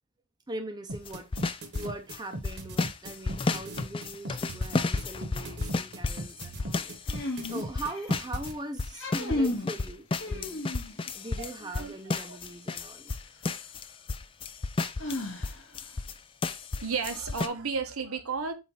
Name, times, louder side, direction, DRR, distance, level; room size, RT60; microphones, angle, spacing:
voice 1, 0.5-10.6 11.1-13.1, right 1 dB, 20° right, 0.7 m, -41 dB
sound 1, 0.9-8.5, right 1 dB, 50° right, 1.1 m, -38 dB
sound 2, 1.1-2.2 2.4-8.5 8.8-16.1 16.4-17.5, left 3 dB, 25° left, 0.3 m, -32 dB
sound 3, 7.1-8.3 8.8-9.7 10.2-11.1 13.1-13.2 15.0-15.8, left 1 dB, 60° left, 2.0 m, -33 dB
voice 2, 11.4-11.9 12.3-12.4 16.8-18.5, right 5 dB, 75° right, 1.0 m, -33 dB
7.6 x 2.7 x 4.7 m
head